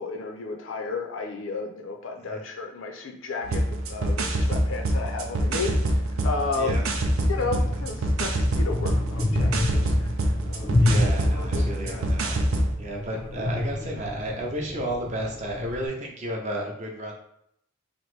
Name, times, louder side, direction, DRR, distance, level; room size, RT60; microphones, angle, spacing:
voice 1, 0.0-7.0 7.3-10.1 10.5-10.8 11.1-12.1 13.1-13.2, left 4 dB, 70° left, 3 dB, 0.5 m, -33 dB
sound 1, 3.4-12.7, right 1 dB, 85° right, 0.5 m, -25 dB
sound 2, 6.9-15.9, left 1 dB, 20° left, 0.3 m, -30 dB
voice 2, 10.8-12.5 12.8-17.1, right 1 dB, 35° right, 0 dB, 0.6 m, -32 dB
3.0 x 2.6 x 3.1 m, 0.72 s
head